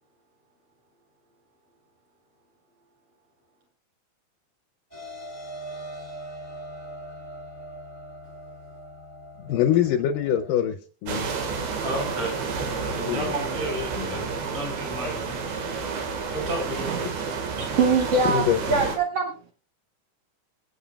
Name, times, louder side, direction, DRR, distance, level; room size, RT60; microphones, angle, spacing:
sound 1, 4.9-10.5, right 1 dB, 20° left, 1.3 m, -41 dB
voice 1, 9.5-10.8 11.0-11.3 13.0-13.2 18.3-18.6, left 10 dB, 75° left, 7 dB, 2.1 m, -23 dB
sound 2, 11.1-19.0, right 5 dB, 90° right, 3.6 m, -30 dB
voice 2, 11.8-15.5 16.3-17.7, right 1 dB, 45° right, 0 dB, 6.4 m, -33 dB
voice 3, 17.6-19.5, right 4 dB, 65° right, 1 dB, 1.6 m, -24 dB
25.0 x 8.6 x 2.3 m, 0.37 s
omnidirectional pair, 4.3 m